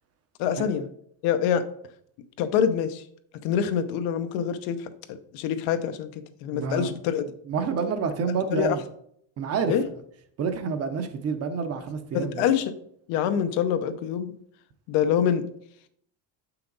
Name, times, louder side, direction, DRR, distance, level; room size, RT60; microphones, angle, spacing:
voice 1, 0.4-0.9 1.2-1.6 2.4-3.0 3.4-7.2 8.5-8.8 9.7-9.8 12.1-12.7 13.1-14.3 14.9-15.5, left 8 dB, 75° left, 10 dB, 0.8 m, -25 dB
voice 2, 6.5-6.9 7.5-8.8 9.4-9.7 10.4-12.4, right 5 dB, 30° right, 8 dB, 0.7 m, -28 dB
6.8 x 5.8 x 3.9 m, 0.68 s
cardioid pair, 160°, 47 cm